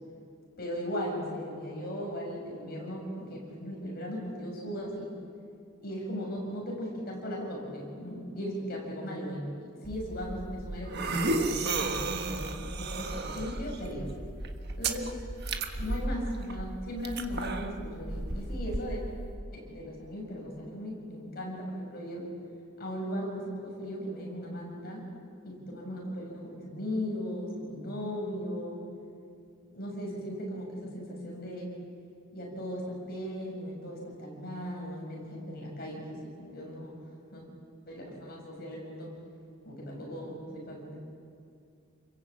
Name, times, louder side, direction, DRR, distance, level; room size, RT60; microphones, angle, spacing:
voice 1, 0.6-5.1 5.8-14.1 14.8-15.1 15.8-19.0 19.5-22.3 22.8-25.1 25.4-28.8 29.7-31.7 32.3-37.0 37.3-37.5 37.9-39.1 39.6-41.0, equal, 45° left, -1 dB, 7.0 m, -37 dB
sound 1, 9.8-19.3, right 2 dB, 50° right, 1.5 m, -34 dB
29.5 x 22.0 x 8.6 m, 2.4 s
head